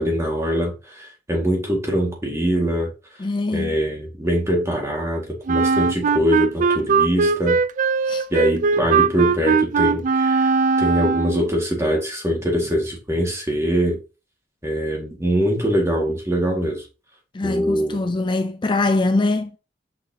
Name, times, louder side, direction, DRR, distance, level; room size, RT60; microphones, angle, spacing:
voice 1, 0.0-2.9 3.5-7.6 8.3-10.5 10.8-14.0 14.6-16.9 17.4-18.1, equal, 15° right, 2.0 m, -23 dB
voice 2, 3.2-3.7 8.1-8.3 17.3-19.5, left 2 dB, 25° left, 0.4 m, -22 dB
Wind instrument woodwind instrument, 5.5-11.5, right 5 dB, 45° right, 0.3 m, -19 dB
6.4 x 5.7 x 2.9 m
head